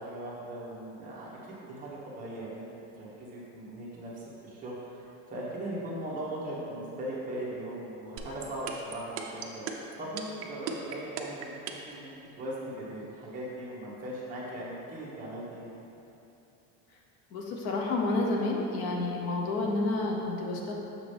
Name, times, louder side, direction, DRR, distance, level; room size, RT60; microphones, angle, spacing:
voice 1, 0.0-2.7 3.0-9.6 10.0-15.7, right 1 dB, 25° right, -6 dB, 1.2 m, -39 dB
sound 1, 8.2-12.0, right 10 dB, 45° right, 0.5 m, -36 dB
voice 2, 17.3-20.7, left 2 dB, 50° left, 0 dB, 0.8 m, -30 dB
6.6 x 6.1 x 3.3 m, 2.8 s
cardioid pair, 175°, 32 cm